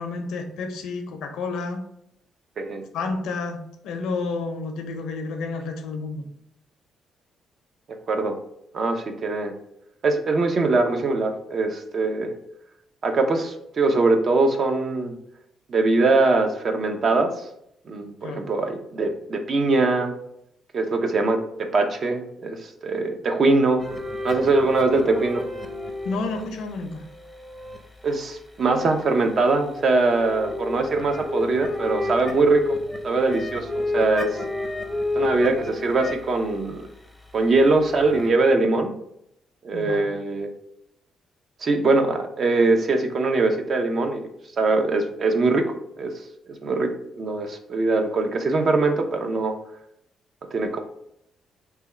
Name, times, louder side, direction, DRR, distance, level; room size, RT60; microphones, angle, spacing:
voice 1, 0.0-1.8 2.9-6.3 18.2-18.4 26.0-27.0 39.7-40.1, left 3 dB, 85° left, 6 dB, 0.5 m, -30 dB
voice 2, 7.9-8.4 8.7-9.5 10.0-12.3 13.0-15.1 15.7-17.5 17.9-20.1 20.7-23.8 24.2-25.4 28.0-32.8 33.0-34.3 35.1-36.9 37.3-38.9 39.6-40.5 41.6-44.3 44.6-45.6 46.0-46.1 46.5-46.9 47.2-49.5 50.5-50.8, right 3 dB, 50° right, 5 dB, 0.6 m, -22 dB
sound 1, 23.8-28.2 29.2-38.3, left 2 dB, ahead, 0.6 m, -31 dB
3.3 x 2.2 x 4.3 m, 0.75 s
cardioid pair, 90°, 0 cm